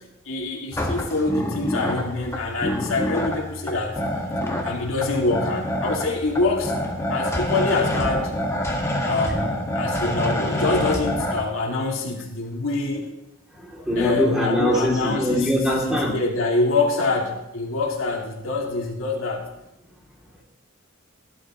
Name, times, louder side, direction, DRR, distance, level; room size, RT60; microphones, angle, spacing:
voice 1, 0.3-4.0 4.6-6.7 7.1-8.3 9.1-13.1 14.0-19.5, left 3 dB, 80° left, 0 dB, 2.4 m, -25 dB
sound 1, 0.7-11.4, left 1 dB, 15° left, 1.7 m, -27 dB
voice 2, 13.5-16.2, equal, 5° right, -3 dB, 2.8 m, -22 dB
17.5 x 11.5 x 3.1 m, 0.89 s
head